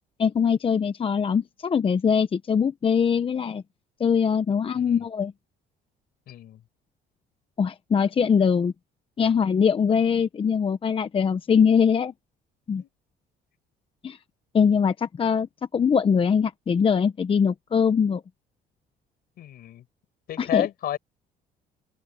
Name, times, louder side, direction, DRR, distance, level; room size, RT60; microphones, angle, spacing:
voice 1, 0.2-3.6 4.0-5.3 7.6-8.7 9.2-12.1 12.7-12.8 14.0-14.2 14.5-15.5 15.7-18.2 20.4-20.7, left 6 dB, 30° left, 0.9 m, -22 dB
voice 2, 6.3-6.6 9.2-9.3 12.8-12.9 19.4-19.8 20.3-21.0, left 12 dB, 65° left, 4.9 m, -31 dB
cardioid pair, 110°, 17 cm